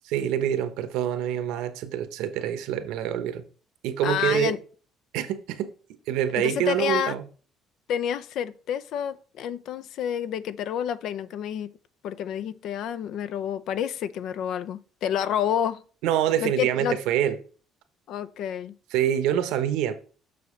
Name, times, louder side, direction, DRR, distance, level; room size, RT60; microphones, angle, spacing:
voice 1, 0.0-3.4 3.8-4.5 5.1-5.7 6.1-7.2 16.0-17.4 18.9-19.9, right 10 dB, 90° right, 1.0 m, -26 dB
voice 2, 4.0-4.6 6.4-7.2 7.9-11.7 12.0-15.8 16.4-17.0 18.1-18.7, left 9 dB, 65° left, 0.6 m, -29 dB
6.8 x 6.4 x 3.2 m
cardioid pair, 125°, 0 cm